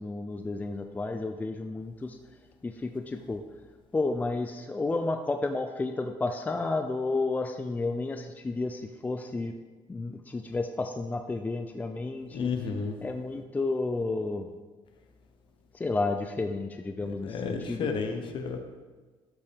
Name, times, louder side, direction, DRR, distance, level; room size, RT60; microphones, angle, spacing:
voice 1, 0.0-2.2 2.6-3.4 3.9-9.5 9.9-12.5 13.0-14.5 15.7-17.9, left 3 dB, 15° left, 5 dB, 0.4 m, -31 dB
voice 2, 12.3-13.0 17.2-18.6, left 5 dB, 55° left, 5 dB, 1.1 m, -32 dB
12.5 x 5.5 x 3.5 m, 1.3 s
cardioid pair, 120°, 10 cm